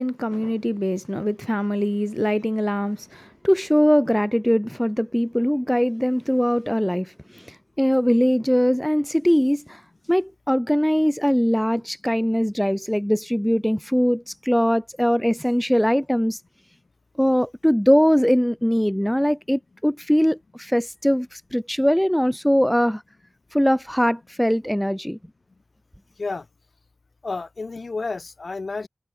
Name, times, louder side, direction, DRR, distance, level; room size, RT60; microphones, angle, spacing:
voice 1, 0.0-9.8 10.1-16.4 17.2-23.0 23.5-25.2, equal, 5° left, 0.4 m, -21 dB
voice 2, 27.2-28.9, left 3 dB, 75° left, 2.3 m, -30 dB
wide cardioid pair, 50°, 0 cm